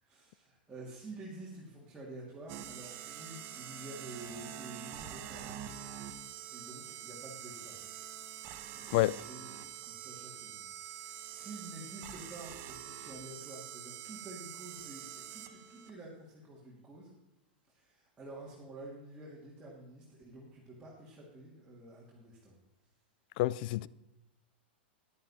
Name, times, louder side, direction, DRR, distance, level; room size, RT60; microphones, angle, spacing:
voice 1, 0.0-5.8 6.5-7.8 8.7-9.5 9.8-17.1 17.7-22.6, right 2 dB, 15° right, 2.8 m, -49 dB
sound 1, 2.5-15.9, right 10 dB, 45° right, 1.0 m, -45 dB
voice 2, 23.4-23.9, left 17 dB, 55° left, 0.3 m, -28 dB
10.5 x 10.5 x 4.3 m
hypercardioid pair, 115°, 6 cm